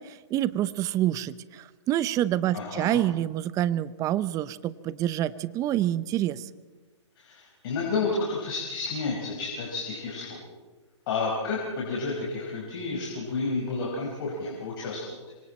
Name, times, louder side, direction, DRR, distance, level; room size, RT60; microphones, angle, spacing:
voice 1, 0.0-6.5, right 12 dB, 20° right, 17 dB, 0.6 m, -27 dB
voice 2, 2.5-3.0 7.2-10.4 11.1-15.2, left 3 dB, 50° left, -3 dB, 5.0 m, -31 dB
25.5 x 24.0 x 4.3 m, 1.3 s
hypercardioid pair, 130°, 16 cm